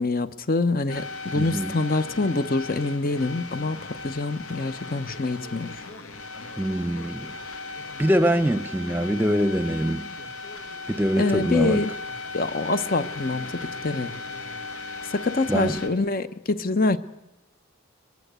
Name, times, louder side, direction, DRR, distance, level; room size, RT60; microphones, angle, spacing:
voice 1, 0.0-5.8 11.2-11.9 12.3-14.2 15.1-17.0, left 3 dB, 40° left, 0.9 m, -25 dB
sound 1, 0.9-15.9, left 3 dB, 80° left, 2.4 m, -37 dB
voice 2, 1.3-1.8 6.6-7.3 8.0-10.0 10.9-11.8 15.5-15.8, equal, 10° right, 0.8 m, -24 dB
22.5 x 22.5 x 8.2 m
head